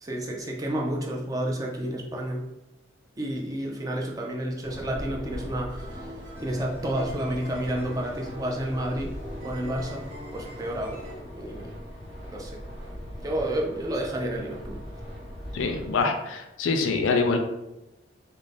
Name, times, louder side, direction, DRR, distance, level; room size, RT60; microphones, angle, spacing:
voice 1, 0.0-2.4 3.2-6.1 6.4-9.1 9.4-10.1 10.3-11.0 11.3-11.7 12.3-12.6 13.2-14.8, right 1 dB, 20° right, -1 dB, 0.3 m, -30 dB
sound 1, 4.6-16.0, equal, 70° right, 1.3 m, -40 dB
sound 2, 5.7-11.2, equal, 40° right, 0.8 m, -44 dB
voice 2, 15.5-17.4, left 4 dB, 85° left, 5 dB, 0.4 m, -25 dB
2.5 x 2.0 x 3.2 m, 0.94 s
head